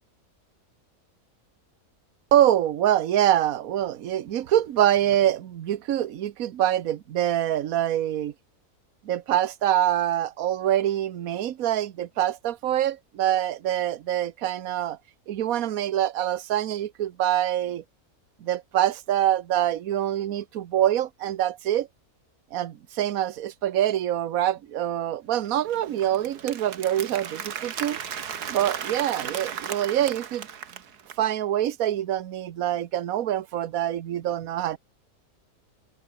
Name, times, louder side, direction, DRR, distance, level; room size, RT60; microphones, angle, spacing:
voice 1, 2.3-8.3 9.0-15.0 15.3-17.8 18.4-21.9 22.5-28.0 28.5-30.5 31.2-34.8, right 11 dB, 65° right, 1.3 m, -25 dB
Applause, 25.4-31.2, right 8 dB, 85° right, 2.0 m, -36 dB
open air
omnidirectional pair, 1.6 m